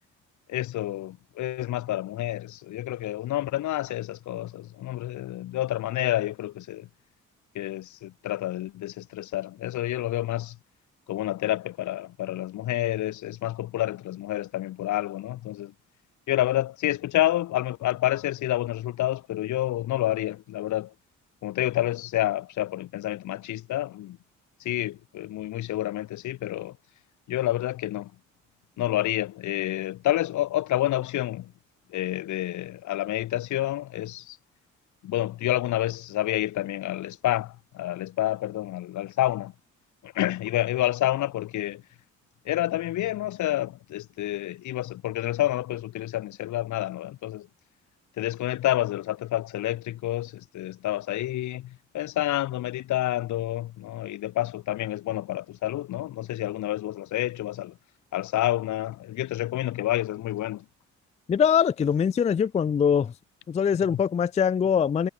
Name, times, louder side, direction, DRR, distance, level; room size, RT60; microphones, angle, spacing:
voice 1, 0.5-6.9 7.5-10.6 11.1-15.7 16.3-20.9 21.4-24.2 24.6-26.8 27.3-28.1 28.8-31.5 31.9-34.4 35.0-39.5 40.0-41.8 42.4-47.5 48.2-57.8 58.1-60.6, left 14 dB, 75° left, 1.0 m, -29 dB
voice 2, 61.3-63.1 63.5-65.1, left 7 dB, 25° left, 0.3 m, -23 dB
cardioid pair, 90°, 30 cm